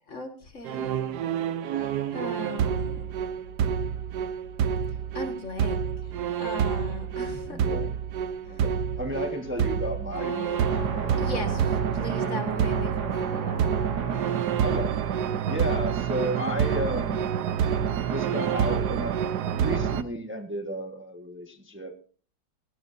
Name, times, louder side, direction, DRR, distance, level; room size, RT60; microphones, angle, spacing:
voice 1, 0.1-1.0 2.1-3.1 5.1-5.9 6.4-7.6 11.2-11.6 11.9-13.5 14.1-14.3, left 1 dB, 45° left, 5 dB, 2.1 m, -37 dB
sound 1, 0.7-20.0, right 8 dB, 70° right, 1.4 m, -27 dB
voice 2, 7.4-7.9 8.5-11.4 14.6-15.0 15.5-17.4 18.1-19.2 19.5-22.0, equal, 10° right, 5 dB, 1.3 m, -33 dB
Wind instrument woodwind instrument, 10.1-14.7, left 13 dB, 90° left, 1.6 m, -41 dB
17.5 x 17.0 x 2.7 m, 0.40 s
omnidirectional pair, 1.8 m